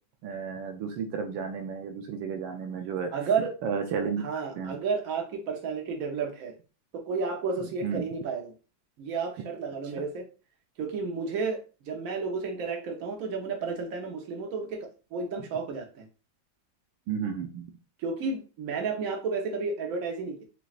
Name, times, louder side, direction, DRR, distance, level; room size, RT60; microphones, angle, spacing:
voice 1, 0.2-3.1 3.6-4.8 7.8-8.1 17.1-17.7, right 6 dB, 80° right, 5 dB, 1.3 m, -33 dB
voice 2, 3.1-3.5 4.2-6.5 6.9-8.5 9.0-10.3 10.8-16.1 18.0-20.4, right 5 dB, 55° right, 2 dB, 1.1 m, -32 dB
6.0 x 2.4 x 2.4 m, 0.33 s
omnidirectional pair, 2.1 m